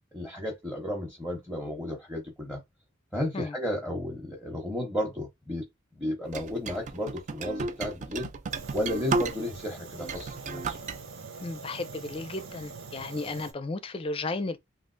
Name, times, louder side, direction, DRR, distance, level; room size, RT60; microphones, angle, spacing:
voice 1, 0.1-2.6 3.1-5.7 5.9-8.3 8.7-10.8, left 1 dB, 5° right, 0.9 m, -33 dB
sound 1, 6.3-9.6 10.0-11.0, right 3 dB, 40° right, 0.4 m, -33 dB
Fire, 8.5-13.5, right 4 dB, 90° right, 0.7 m, -43 dB
voice 2, 11.4-14.6, left 3 dB, 30° left, 0.4 m, -34 dB
3.4 x 2.4 x 2.5 m
head